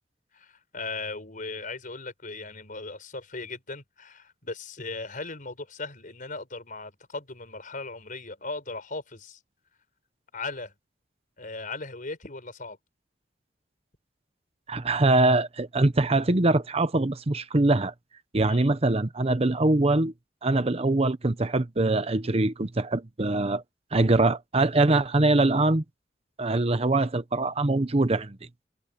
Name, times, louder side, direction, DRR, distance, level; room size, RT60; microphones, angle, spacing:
voice 1, 0.3-9.4 10.3-10.7 11.4-12.8 18.5-18.7, left 3 dB, 50° left, 5.0 m, -38 dB
voice 2, 14.7-17.9 18.3-20.1 20.4-23.6 23.9-25.8 26.4-28.4, right 2 dB, 35° right, 0.9 m, -23 dB
head